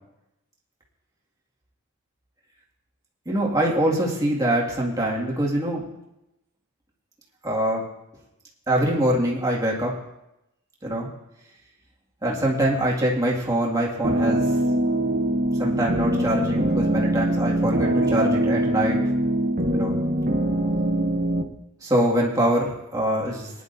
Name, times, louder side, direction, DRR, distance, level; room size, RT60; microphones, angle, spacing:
voice 1, 3.3-5.8 7.4-7.8 8.7-9.9 10.8-11.1 12.2-14.5 15.6-19.0 19.7-20.0 21.8-23.5, right 1 dB, 15° right, -3 dB, 2.1 m, -24 dB
sound 1, 14.0-21.4, right 1 dB, 40° right, 0.8 m, -23 dB
19.5 x 10.5 x 2.7 m, 0.87 s
head